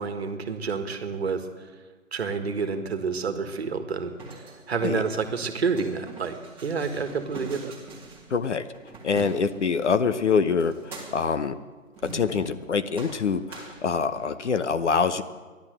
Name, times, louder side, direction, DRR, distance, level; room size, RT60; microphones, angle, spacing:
voice 1, 0.0-1.5 2.1-4.1 4.7-7.8, right 5 dB, 50° right, 8 dB, 1.5 m, -29 dB
sound 1, 3.9-9.9 10.6-11.4 12.0-12.7 12.9-14.4, right 2 dB, 5° right, 1.4 m, -43 dB
voice 2, 8.3-8.7 9.0-11.6 12.0-15.2, left 5 dB, 55° left, 11 dB, 0.9 m, -25 dB
13.5 x 11.5 x 7.7 m, 1.4 s
figure-of-eight pair, 155°, 41 cm